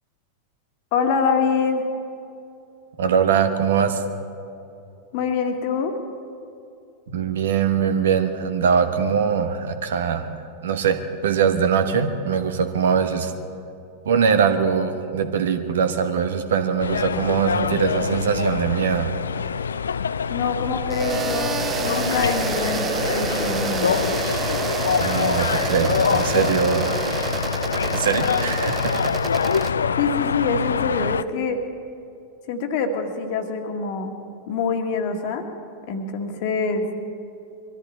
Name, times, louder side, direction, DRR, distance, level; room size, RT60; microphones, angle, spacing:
voice 1, 0.9-1.8 5.1-6.0 20.3-23.9 30.0-31.6 32.5-34.1 34.5-35.4 35.9-36.9, left 5 dB, 50° left, 6 dB, 1.7 m, -25 dB
voice 2, 3.0-4.0 7.1-13.3 14.0-19.1 25.0-27.1 27.3-27.4 27.9-29.1, right 7 dB, 60° right, 8 dB, 1.2 m, -22 dB
sound 1, 16.8-31.2, left 6 dB, 70° left, 0.3 m, -25 dB
sound 2, 20.9-29.7, right 7 dB, 25° right, 0.6 m, -28 dB
22.5 x 14.0 x 4.2 m, 2.6 s
figure-of-eight pair, 90°, 0 cm